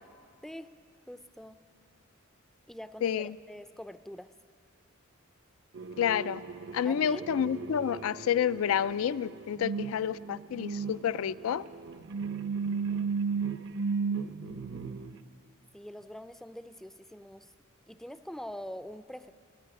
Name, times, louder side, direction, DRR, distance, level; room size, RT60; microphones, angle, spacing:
voice 1, 1.1-1.6 2.7-4.3 6.8-7.3 12.6-13.5 15.7-17.5 17.9-19.3, equal, ahead, 12 dB, 0.4 m, -45 dB
voice 2, 3.0-3.4 6.0-6.4 6.7-11.6, left 8 dB, 85° left, 18 dB, 0.3 m, -29 dB
sound 1, 5.7-15.1, right 5 dB, 60° right, 0.6 m, -35 dB
15.5 x 9.3 x 9.6 m, 2.2 s
head